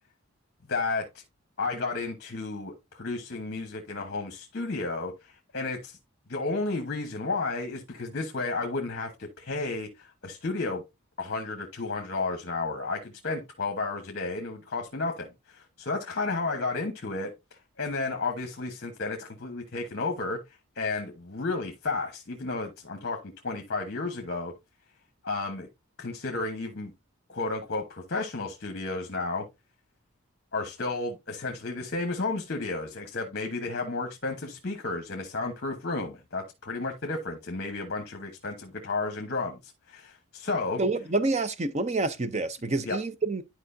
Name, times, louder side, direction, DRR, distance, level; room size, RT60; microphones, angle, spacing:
voice 1, 0.7-1.2 1.6-6.0 6.3-10.8 11.2-17.3 17.8-20.4 20.7-24.5 25.2-25.7 26.0-26.9 27.3-29.4 30.5-40.8 42.8-43.0, left 3 dB, 50° left, 1.1 m, -32 dB
voice 2, 40.8-43.4, right 3 dB, 30° right, 0.6 m, -28 dB
11.0 x 4.7 x 2.7 m
head